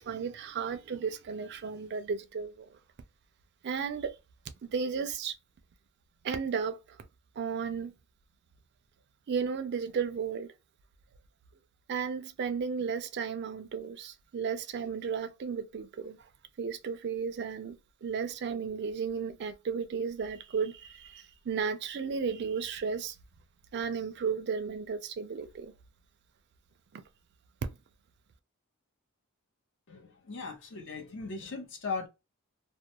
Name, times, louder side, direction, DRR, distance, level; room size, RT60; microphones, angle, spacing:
voice 1, 0.0-2.8 3.6-4.1 4.6-5.3 6.2-6.8 7.4-7.9 9.3-10.5 11.9-16.2 16.6-23.2 23.7-25.7 26.9-27.0, right 6 dB, 50° right, 0.4 m, -34 dB
voice 2, 29.9-32.1, left 4 dB, 55° left, 0.8 m, -38 dB
2.3 x 2.1 x 2.8 m
head